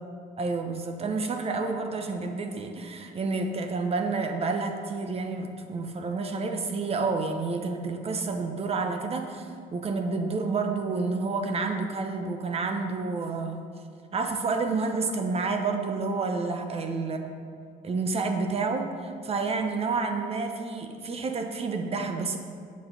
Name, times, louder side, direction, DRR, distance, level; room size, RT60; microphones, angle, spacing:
voice 1, 0.4-13.6 14.1-17.3 17.8-22.4, right 4 dB, 35° right, 5 dB, 0.9 m, -29 dB
8.5 x 6.4 x 5.4 m, 2.2 s
cardioid pair, 110°, 17 cm